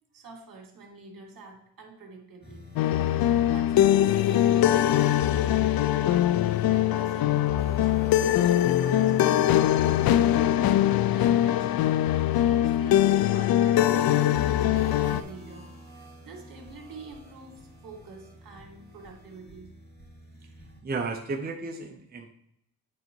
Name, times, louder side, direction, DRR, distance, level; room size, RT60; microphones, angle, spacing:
voice 1, 0.1-2.6 3.4-6.3 6.7-12.0 12.4-15.7 15.9-19.7, right 4 dB, 65° right, 1 dB, 2.2 m, -46 dB
sound 1, 2.4-20.8, right 1 dB, 25° left, 2.2 m, -50 dB
sound 2, 2.8-15.2, left 12 dB, 75° left, 0.5 m, -22 dB
voice 2, 20.8-22.3, right 3 dB, 25° right, 2 dB, 0.7 m, -33 dB
8.4 x 4.0 x 4.6 m, 0.78 s
cardioid pair, 110°, 37 cm